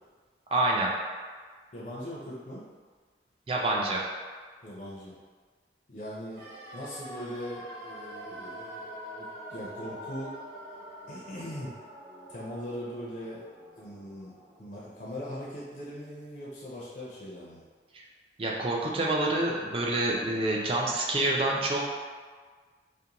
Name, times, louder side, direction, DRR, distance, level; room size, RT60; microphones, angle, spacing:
voice 1, 0.5-0.9 3.5-4.0 17.9-18.0 18.4-21.8, right 2 dB, 30° right, -2 dB, 0.3 m, -27 dB
voice 2, 1.7-2.6 4.6-5.1 5.9-6.4 6.7-10.4 11.1-11.8 12.3-13.4 13.8-14.3 14.6-17.6, equal, 45° left, -7 dB, 0.4 m, -40 dB
sound 1, 6.4-16.3 16.6-16.7, equal, 55° right, 0.7 m, -45 dB
2.5 x 2.1 x 2.8 m, 1.5 s
head